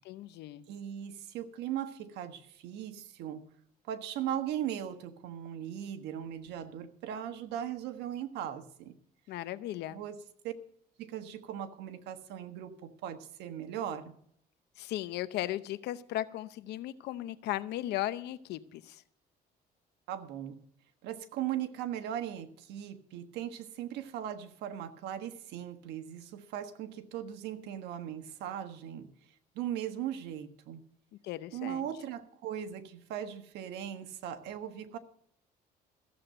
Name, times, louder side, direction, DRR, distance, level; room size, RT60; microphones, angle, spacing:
voice 1, 0.0-0.7 9.3-10.0 14.8-19.0 31.2-31.9, left 14 dB, 80° left, 14 dB, 0.8 m, -36 dB
voice 2, 0.7-3.4 3.8-8.9 9.9-10.2 10.4-10.5 11.0-14.1 20.1-20.6 21.0-29.1 29.5-30.8 31.5-35.0, right 10 dB, 85° right, 8 dB, 1.4 m, -38 dB
15.0 x 7.7 x 6.6 m, 0.66 s
cardioid pair, 110°, 17 cm